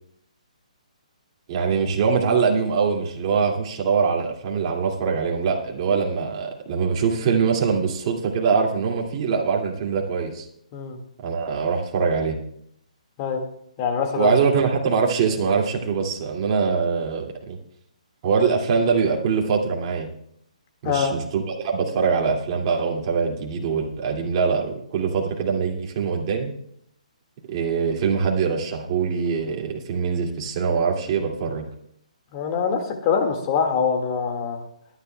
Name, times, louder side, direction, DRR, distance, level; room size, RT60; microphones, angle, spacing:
voice 1, 1.5-10.5 11.2-12.4 14.2-17.6 18.2-20.1 20.8-26.5 27.5-31.6, right 5 dB, 35° right, -1 dB, 2.3 m, -23 dB
voice 2, 13.8-14.3 20.8-21.1 32.3-34.6, left 6 dB, 30° left, 4 dB, 1.9 m, -24 dB
22.0 x 10.0 x 2.3 m, 0.71 s
hypercardioid pair, 150°, 4 cm